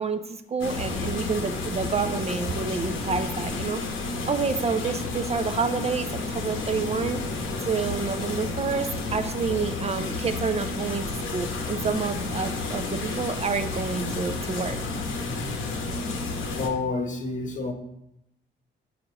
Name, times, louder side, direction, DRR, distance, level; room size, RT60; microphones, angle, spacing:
voice 1, 0.0-3.8 4.3-11.0 11.3-14.8, right 5 dB, 30° right, 8 dB, 0.4 m, -29 dB
sound 1, 0.6-16.7, left 3 dB, 85° left, 1.0 m, -31 dB
voice 2, 16.5-17.7, left 3 dB, 40° left, 5 dB, 0.9 m, -29 dB
7.1 x 5.1 x 2.9 m, 0.82 s
cardioid pair, 90°, 20 cm